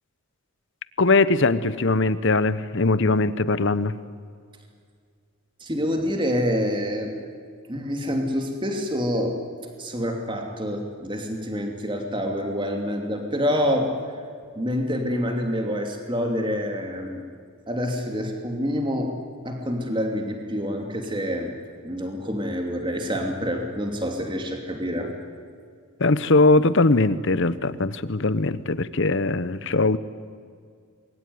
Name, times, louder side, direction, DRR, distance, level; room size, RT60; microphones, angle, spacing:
voice 1, 1.0-3.9 26.0-30.0, left 3 dB, 55° left, 15 dB, 0.9 m, -20 dB
voice 2, 5.6-7.1 7.7-9.4 9.8-13.9 14.5-17.2 17.7-19.2 19.4-21.5 21.8-25.1, equal, 20° right, 3 dB, 2.7 m, -27 dB
27.0 x 21.5 x 9.6 m, 2.1 s
head